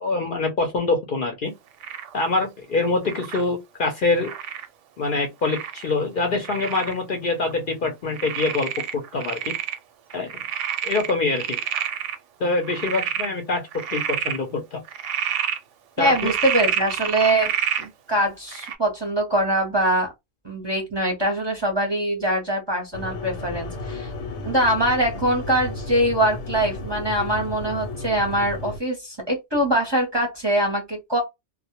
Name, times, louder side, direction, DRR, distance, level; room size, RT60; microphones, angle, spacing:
voice 1, 0.0-1.5 2.1-4.3 5.0-9.5 10.1-10.4 10.8-11.6 12.4-14.8 16.0-16.3, left 3 dB, 55° left, 0.6 m, -25 dB
Frog, 1.8-2.1 3.0-3.4 4.2-4.7 5.4-5.9 6.4-7.0 7.4-7.5 8.1-9.8 10.1-12.1 12.6-13.3 13.7-14.4 14.9-15.6 16.1-17.9 18.5-18.7, right 9 dB, 90° right, 0.9 m, -28 dB
voice 2, 16.0-17.5 17.8-20.1 20.4-24.1 24.4-31.2, right 1 dB, 25° right, 0.7 m, -23 dB
sound 1, 22.9-28.8, left 2 dB, 80° left, 0.9 m, -33 dB
2.1 x 2.1 x 2.8 m
omnidirectional pair, 1.2 m